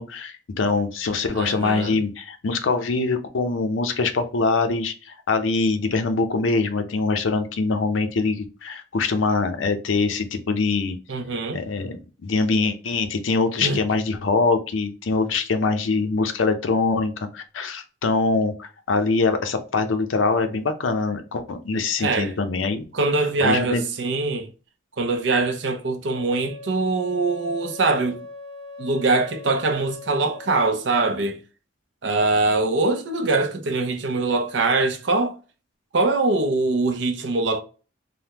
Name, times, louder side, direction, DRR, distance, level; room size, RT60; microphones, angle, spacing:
voice 1, 0.0-11.0 11.5-22.8 23.4-23.8, left 3 dB, 80° left, 0.5 m, -23 dB
voice 2, 1.3-2.0 11.1-11.6 13.6-13.8 22.0-22.3 22.9-24.5 25.0-28.2 28.8-31.4 32.0-35.4 35.9-37.6, right 3 dB, 65° right, 0.5 m, -23 dB
Wind instrument woodwind instrument, 26.1-30.6, left 3 dB, 25° left, 0.4 m, -40 dB
3.3 x 2.1 x 2.8 m
head